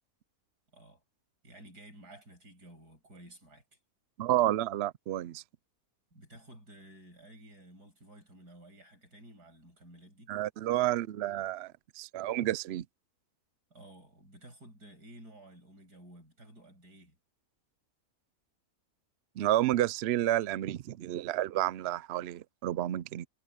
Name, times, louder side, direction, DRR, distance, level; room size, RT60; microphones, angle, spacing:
voice 1, 1.4-3.6 6.1-10.3 13.7-17.2, right 1 dB, 90° right, 8.1 m, -53 dB
voice 2, 4.2-5.4 10.3-12.8 19.4-23.3, right 14 dB, 65° right, 0.6 m, -30 dB
omnidirectional pair, 1.6 m